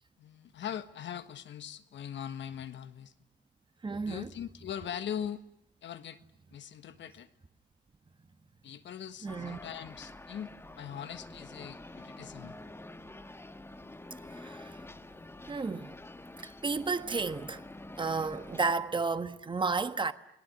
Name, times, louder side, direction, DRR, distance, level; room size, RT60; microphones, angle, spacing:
voice 1, 0.2-3.1 4.0-5.4 5.8-6.2 6.5-7.3 8.6-12.6, left 9 dB, 65° left, 1.5 m, -41 dB
voice 2, 3.8-4.3 9.2-9.6 14.4-14.7 15.5-15.9 16.4-17.6 18.0-20.1, right 4 dB, 25° right, 1.3 m, -32 dB
sound 1, 9.3-18.7, left 2 dB, 10° left, 1.6 m, -48 dB
30.0 x 19.0 x 9.4 m
cardioid pair, 90°, 20 cm